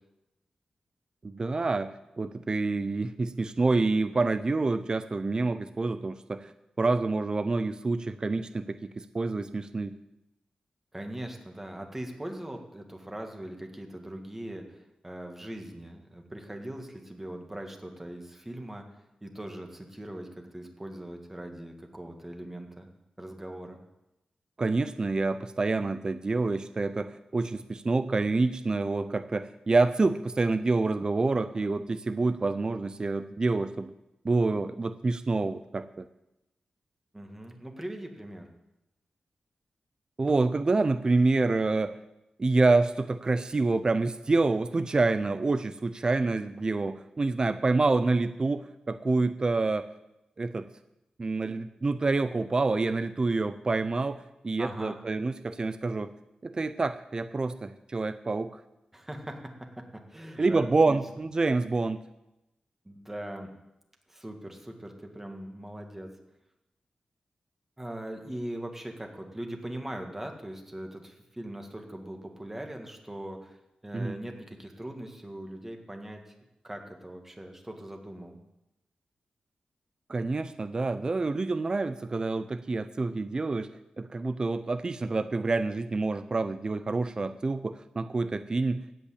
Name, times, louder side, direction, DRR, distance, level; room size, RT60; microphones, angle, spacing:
voice 1, 1.2-6.5 6.8-10.0 24.6-33.9 34.2-36.1 40.2-42.0 42.4-49.9 50.4-50.7 51.2-56.1 56.4-58.6 60.4-62.0 73.9-74.2 80.1-83.7 84.0-89.0, right 3 dB, 35° right, 11 dB, 0.5 m, -27 dB
voice 2, 10.9-18.8 19.2-22.9 23.2-23.8 37.1-38.5 54.6-55.0 58.9-61.0 62.9-63.5 64.1-66.1 67.8-73.6 73.8-76.3 76.6-78.4, right 1 dB, 15° right, 3 dB, 1.9 m, -40 dB
16.5 x 5.5 x 8.5 m, 0.92 s
wide cardioid pair, 110°, 2 cm